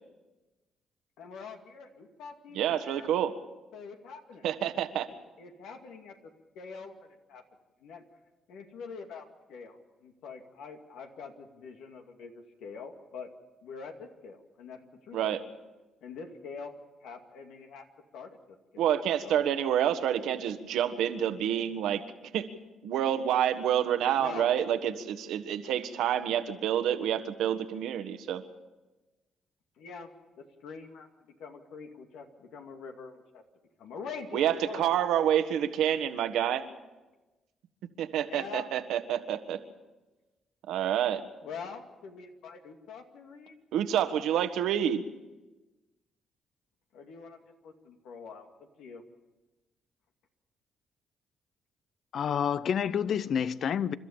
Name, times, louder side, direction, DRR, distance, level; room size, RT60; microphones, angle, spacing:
voice 1, 1.2-3.1 3.7-4.5 5.1-6.2 6.6-7.4 7.8-8.0 8.5-13.3 13.6-15.5 16.0-16.7 17.0-17.9 18.1-18.4 18.7-18.9 19.2-19.5 24.2-24.5 29.8-30.1 30.6-31.1 31.4-33.4 33.8-34.8 38.2-38.7 41.4-43.6 46.9-47.4 47.6-48.5 48.8-49.0, left 5 dB, 85° left, 2.3 m, -44 dB
voice 2, 2.5-3.3 4.4-5.1 15.1-15.4 18.8-22.0 22.3-22.4 22.8-28.4 34.3-36.6 38.0-39.6 40.7-41.2 43.7-45.0, right 10 dB, 85° right, 1.4 m, -28 dB
voice 3, 52.1-53.9, left 8 dB, 60° left, 0.7 m, -28 dB
29.0 x 13.0 x 7.3 m
cardioid pair, 90°, 0 cm